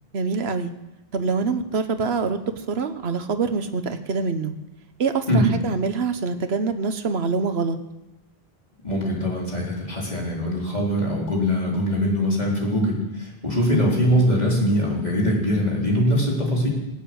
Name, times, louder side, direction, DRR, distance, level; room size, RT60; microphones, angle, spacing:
voice 1, 0.1-0.7 1.1-4.5 5.0-7.8, right 4 dB, 85° right, 8 dB, 1.3 m, -25 dB
voice 2, 8.8-16.7, equal, 40° left, -4 dB, 4.6 m, -22 dB
19.0 x 8.9 x 8.0 m, 0.97 s
omnidirectional pair, 1.0 m